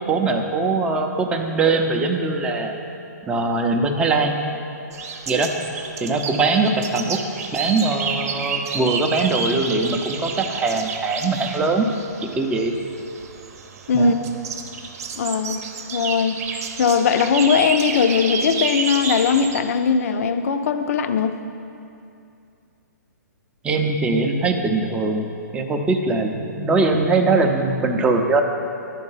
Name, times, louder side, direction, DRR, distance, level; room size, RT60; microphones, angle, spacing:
voice 1, 0.1-2.7 3.2-4.3 5.3-5.5 6.0-7.2 7.5-11.9 12.4-12.7 13.9-14.2 23.6-25.3 25.5-28.4, right 3 dB, 10° right, 3 dB, 0.5 m, -21 dB
sound 1, 4.9-19.6, right 5 dB, 55° right, 0.8 m, -30 dB
voice 2, 15.2-15.6 15.9-16.4 16.8-21.3, left 6 dB, 55° left, 9 dB, 0.5 m, -19 dB
11.0 x 4.5 x 5.6 m, 2.6 s
hypercardioid pair, 140°, 10 cm